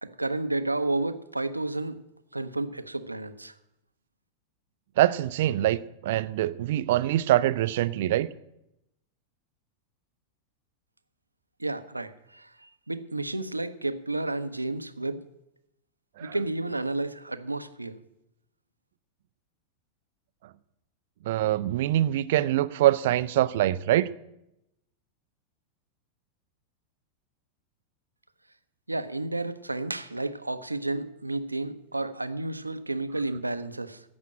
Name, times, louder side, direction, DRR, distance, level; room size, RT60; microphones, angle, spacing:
voice 1, 0.0-2.0 2.3-3.5 11.6-15.2 16.2-18.0 28.9-34.0, right 2 dB, 85° right, 0.7 m, -31 dB
voice 2, 5.0-8.3 16.2-16.4 21.3-24.1, right 14 dB, 55° right, 0.5 m, -24 dB
15.0 x 6.1 x 8.7 m
figure-of-eight pair, 90°, 0 cm